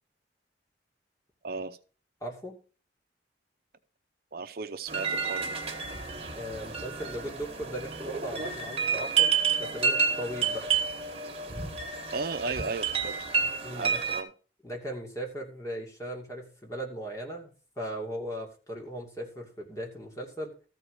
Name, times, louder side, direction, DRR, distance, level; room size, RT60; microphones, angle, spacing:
voice 1, 1.4-1.8 4.3-5.6 12.1-13.2 13.7-14.3, right 4 dB, 55° right, 9 dB, 0.7 m, -35 dB
voice 2, 2.2-2.6 6.3-10.7 12.4-12.7 13.6-14.0 14.6-20.5, equal, 20° left, 0 dB, 2.5 m, -38 dB
sound 1, 4.9-14.2, right 6 dB, 35° right, 1.6 m, -30 dB
14.0 x 4.7 x 6.4 m, 0.37 s
head